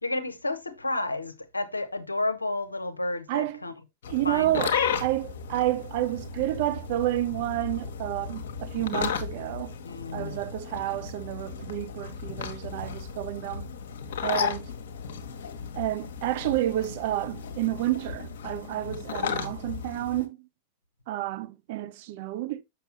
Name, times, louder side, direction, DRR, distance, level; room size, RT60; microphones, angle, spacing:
voice 1, 0.0-3.7 4.2-4.6 9.8-10.4 19.2-19.5, left 2 dB, 80° left, 0.7 m, -31 dB
voice 2, 3.3-3.6 4.1-9.7 10.1-13.7 14.2-14.7 15.8-20.4 21.1-22.6, right 15 dB, 50° right, 0.6 m, -30 dB
sound 1, 4.0-20.2, left 6 dB, 60° left, 1.1 m, -34 dB
6.7 x 6.0 x 2.8 m
figure-of-eight pair, 90°, 0 cm